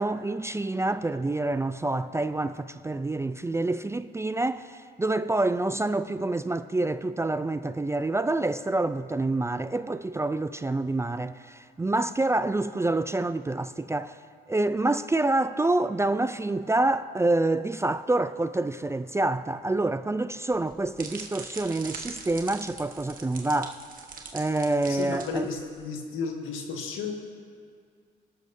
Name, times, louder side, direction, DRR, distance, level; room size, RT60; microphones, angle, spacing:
voice 1, 0.0-14.2 14.5-23.8 24.3-25.5, right 2 dB, 15° right, 0.3 m, -27 dB
sound 1, 20.5-25.9, right 4 dB, 45° right, 1.3 m, -43 dB
voice 2, 24.9-27.1, left 4 dB, 85° left, 1.7 m, -33 dB
22.0 x 12.5 x 2.7 m
cardioid pair, 90°, 20 cm